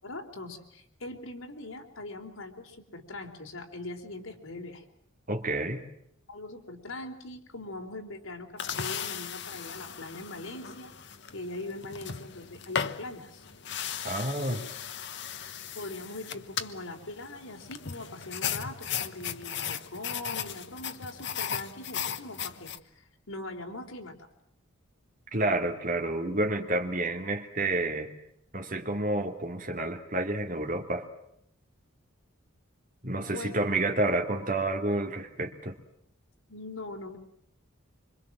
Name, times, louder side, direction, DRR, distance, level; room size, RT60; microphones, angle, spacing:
voice 1, 0.0-4.8 6.3-10.9 11.3-13.5 14.6-14.7 15.7-24.3 33.3-33.5 36.5-37.2, left 2 dB, 85° left, 3 dB, 4.0 m, -41 dB
voice 2, 5.3-5.8 14.0-14.6 25.3-28.1 28.5-31.1 33.0-35.8, right 2 dB, 40° right, 4 dB, 2.8 m, -29 dB
sound 1, 8.6-22.8, left 8 dB, 55° left, 1.2 m, -37 dB
25.5 x 25.5 x 7.5 m, 0.74 s
head